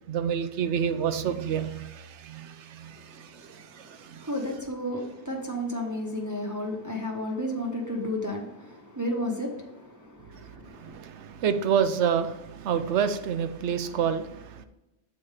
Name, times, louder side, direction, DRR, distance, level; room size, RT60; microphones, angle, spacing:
voice 1, 0.1-4.3 10.3-14.6, right 7 dB, 80° right, 1.0 m, -29 dB
voice 2, 2.9-11.0, left 1 dB, 15° right, 0.9 m, -33 dB
7.0 x 4.2 x 4.9 m
omnidirectional pair, 1.2 m